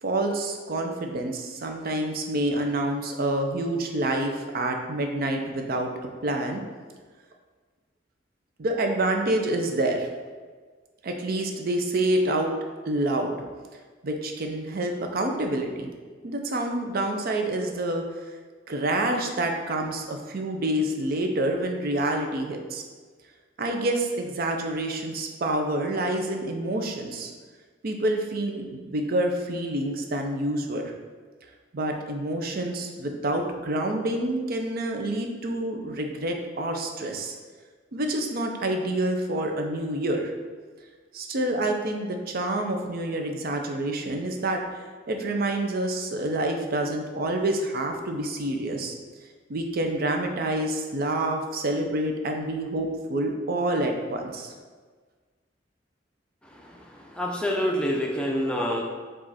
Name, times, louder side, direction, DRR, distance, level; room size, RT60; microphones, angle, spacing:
voice 1, 0.0-5.9 6.2-6.6 8.6-10.1 11.0-12.5 12.9-13.4 14.0-15.9 16.2-18.0 18.7-22.8 23.6-27.3 27.8-30.9 31.7-37.3 37.9-40.3 41.1-44.6 45.1-48.9 49.5-54.5, right 1 dB, 55° right, 3 dB, 0.5 m, -27 dB
voice 2, 56.6-58.8, equal, 5° left, -2 dB, 0.6 m, -27 dB
4.9 x 2.5 x 4.1 m, 1.5 s
head